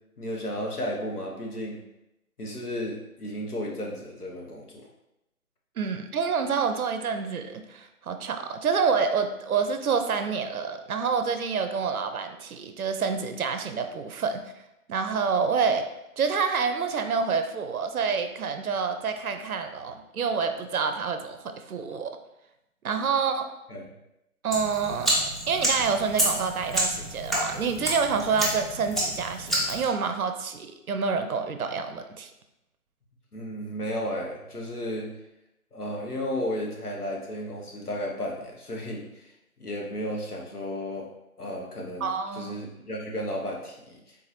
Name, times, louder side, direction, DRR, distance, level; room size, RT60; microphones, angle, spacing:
voice 1, 0.2-1.8 2.4-4.9 23.7-23.9 33.3-35.1 35.7-39.3 39.6-41.1 41.4-44.1, equal, 85° left, -1 dB, 1.1 m, -33 dB
voice 2, 5.8-14.4 14.9-15.8 16.2-22.2 22.8-23.5 24.4-32.3 42.0-42.5, right 5 dB, 75° right, 8 dB, 0.5 m, -28 dB
sound 1, 24.5-29.9, right 1 dB, ahead, 0.4 m, -29 dB
3.8 x 2.8 x 2.5 m, 0.88 s
figure-of-eight pair, 165°, 44 cm